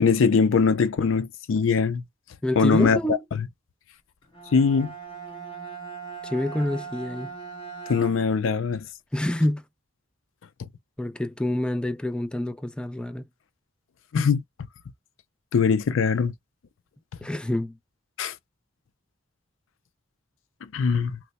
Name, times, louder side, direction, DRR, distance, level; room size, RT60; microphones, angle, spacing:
voice 1, 0.0-2.0 2.6-3.2 4.5-4.9 7.9-8.9 14.1-14.4 15.5-16.3 18.2-18.3 20.7-21.2, left 5 dB, 85° left, 0.4 m, -21 dB
voice 2, 2.4-3.2 6.2-7.3 9.1-9.7 11.0-13.3 17.2-17.8, left 1 dB, 5° left, 0.3 m, -27 dB
Bowed string instrument, 4.2-8.5, right 5 dB, 25° left, 1.3 m, -39 dB
3.0 x 2.1 x 4.0 m
head